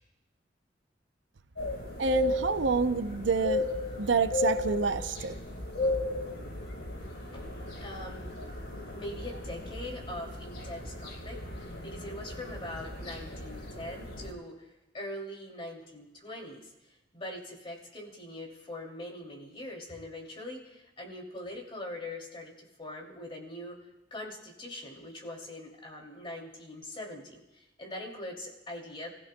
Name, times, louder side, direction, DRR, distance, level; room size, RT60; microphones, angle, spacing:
sound 1, 1.6-14.3, left 2 dB, 85° left, 4.1 m, -35 dB
voice 1, 2.0-3.7 4.0-5.4, right 5 dB, 85° right, 11 dB, 0.6 m, -28 dB
voice 2, 7.8-8.5 8.9-14.7 14.9-23.8 24.1-29.1, left 1 dB, 30° left, -1 dB, 2.7 m, -42 dB
29.0 x 16.0 x 2.3 m, 0.97 s
head